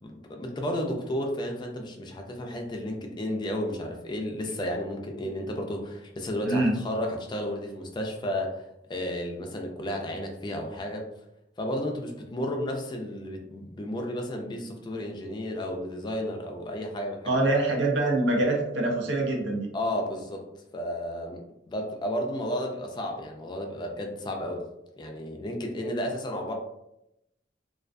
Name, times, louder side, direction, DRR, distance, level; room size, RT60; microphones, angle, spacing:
voice 1, 0.0-8.6 8.9-11.0 11.6-17.4 19.7-20.5 20.7-24.6 25.0-26.5, left 1 dB, 25° left, 2 dB, 0.3 m, -32 dB
voice 2, 17.2-19.7, right 2 dB, 85° right, 0 dB, 0.6 m, -24 dB
2.3 x 2.2 x 2.4 m, 0.86 s
head